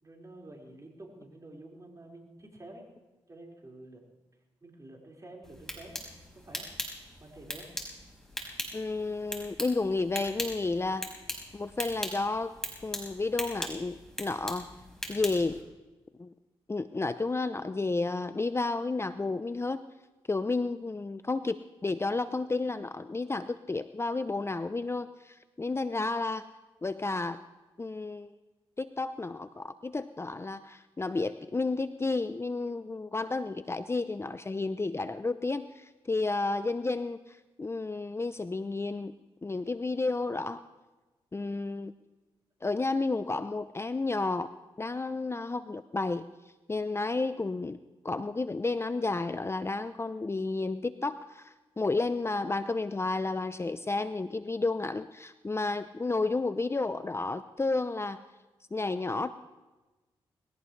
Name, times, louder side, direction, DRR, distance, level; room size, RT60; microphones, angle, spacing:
voice 1, 0.0-2.9 3.3-4.0 4.6-6.0 6.3-6.7 7.2-7.7, right 1 dB, 30° right, -1 dB, 5.0 m, -49 dB
sound 1, 5.4-15.6, equal, 5° left, 4.9 m, -40 dB
voice 2, 8.7-11.1 11.5-12.5 12.8-14.7 15.1-15.6 16.2-16.3 16.7-19.8 20.3-26.5 26.8-27.4 27.8-28.3 28.8-39.1 39.4-40.6 41.3-41.9 42.6-46.3 46.7-47.8 48.0-58.2 58.7-59.3, left 3 dB, 25° left, 13 dB, 0.6 m, -31 dB
20.5 x 16.5 x 3.3 m, 1.1 s
supercardioid pair, 50°, 11 cm